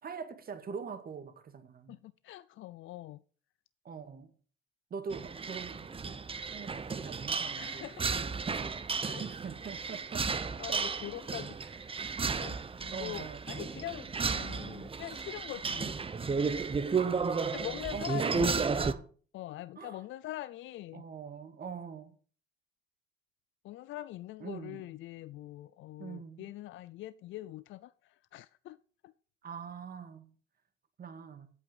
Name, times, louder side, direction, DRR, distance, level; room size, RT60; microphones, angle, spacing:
voice 1, 0.0-2.0 3.9-4.3 4.9-6.2 6.5-7.9 9.2-10.3 10.7-10.8 12.9-13.5 17.0-19.1 19.8-20.0 20.9-22.1 24.4-24.8 26.0-26.5 29.4-30.3 31.0-31.5, right 6 dB, 50° right, 2.0 m, -43 dB
voice 2, 1.9-3.2 7.5-8.2 9.0-9.2 10.6-11.8 12.3-15.9 17.5-18.7 19.3-21.1 23.6-28.8 29.0-29.1, left 14 dB, 80° left, 0.5 m, -43 dB
sound 1, 5.1-18.9, right 5 dB, 30° right, 0.8 m, -33 dB
8.5 x 8.1 x 6.9 m
cardioid pair, 90°, 20 cm